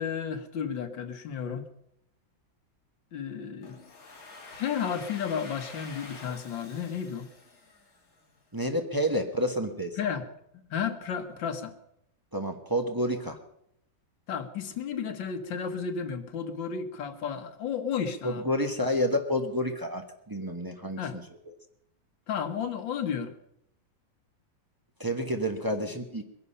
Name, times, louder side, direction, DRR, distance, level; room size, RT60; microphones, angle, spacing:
voice 1, 0.0-1.7 3.1-3.8 4.5-7.3 10.0-10.2 10.7-11.7 14.3-18.5 21.0-21.2 22.3-23.3, left 7 dB, 75° left, 6 dB, 2.0 m, -33 dB
Domestic sounds home sounds, 3.6-8.4, left 3 dB, 50° left, 2.6 m, -47 dB
voice 2, 8.5-10.0 12.3-13.4 18.2-21.2 21.5-21.6 25.0-26.2, equal, 15° right, 4 dB, 0.9 m, -29 dB
21.5 x 11.0 x 5.6 m, 0.77 s
omnidirectional pair, 2.1 m